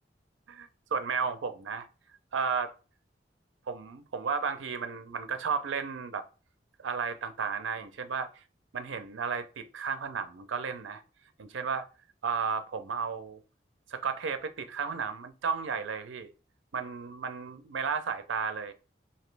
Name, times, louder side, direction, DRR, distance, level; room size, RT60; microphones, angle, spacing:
voice 1, 0.5-1.9 2.3-2.7 3.7-6.2 6.8-8.4 8.7-11.0 11.4-11.9 12.2-13.4 13.9-16.3 16.7-18.7, right 6 dB, 90° right, 0.5 m, -33 dB
2.9 x 2.7 x 3.2 m
head